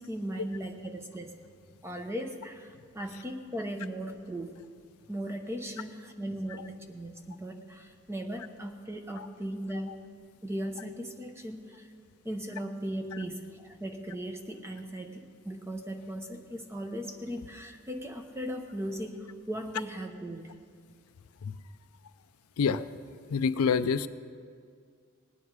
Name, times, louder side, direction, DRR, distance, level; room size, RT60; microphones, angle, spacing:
voice 1, 0.0-1.3 1.8-4.6 5.1-9.9 10.4-11.9 12.2-20.5, right 1 dB, 10° right, 4 dB, 0.8 m, -38 dB
voice 2, 23.3-24.1, left 6 dB, 85° left, 13 dB, 0.4 m, -26 dB
18.5 x 9.4 x 4.7 m, 2.1 s
head